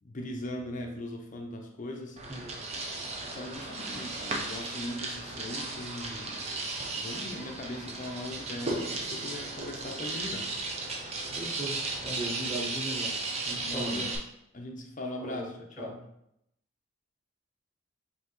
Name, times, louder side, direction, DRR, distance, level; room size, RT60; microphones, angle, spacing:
voice 1, 0.0-2.2 3.3-6.4 6.9-10.5 13.6-14.2 14.5-16.0, left 1 dB, 40° left, 2 dB, 0.6 m, -39 dB
sound 1, 2.2-14.2, right 3 dB, 30° right, 0.6 m, -35 dB
voice 2, 2.3-2.6 11.4-13.1 13.5-14.0 15.2-15.5 15.8-15.9, right 1 dB, 5° right, -6 dB, 1.1 m, -38 dB
5.5 x 2.8 x 3.1 m, 0.79 s
head